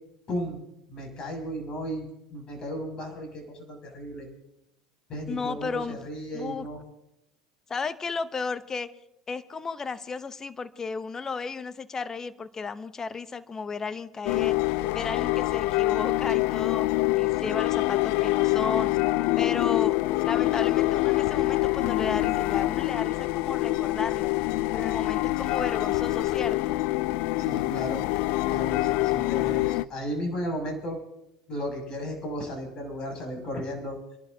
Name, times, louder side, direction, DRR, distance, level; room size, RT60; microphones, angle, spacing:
voice 1, 0.3-0.6 0.9-4.3 5.1-6.8 27.4-28.0 28.5-31.0 31.5-34.0, equal, 40° left, 2 dB, 6.5 m, -34 dB
voice 2, 5.3-6.0 6.3-6.7 7.7-8.9 9.3-16.9 17.2-18.9 19.4-20.0 20.2-24.3 24.7-26.8, left 4 dB, 25° left, 14 dB, 0.8 m, -34 dB
sound 1, 14.2-29.8, left 19 dB, 60° left, 0.4 m, -25 dB
28.5 x 11.5 x 2.8 m, 0.86 s
hypercardioid pair, 85°, 2 cm